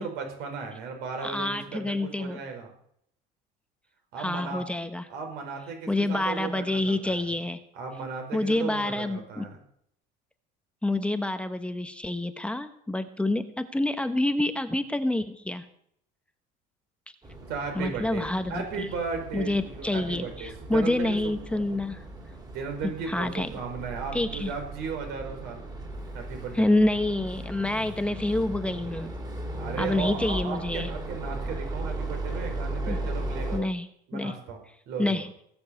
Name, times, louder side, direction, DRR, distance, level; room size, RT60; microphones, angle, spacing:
voice 1, 0.0-2.7 4.1-4.6 5.1-7.3 7.7-9.6 17.5-18.2 18.5-21.8 22.4-25.6 26.1-26.7 29.6-33.7 34.1-34.6 34.9-35.2, right 5 dB, 70° right, 4 dB, 5.1 m, -36 dB
voice 2, 1.2-2.4 4.2-5.0 5.9-7.6 8.3-9.4 10.8-15.7 17.8-18.6 19.3-22.0 22.8-23.5 24.1-24.5 26.5-29.1 29.8-30.9 32.9-33.0 33.5-33.9 34.1-34.4 35.0-35.3, left 2 dB, 5° left, 9 dB, 0.9 m, -27 dB
sound 1, 17.2-33.6, right 2 dB, 20° right, 3.4 m, -37 dB
18.0 x 7.1 x 8.2 m, 0.69 s
cardioid pair, 130°, 18 cm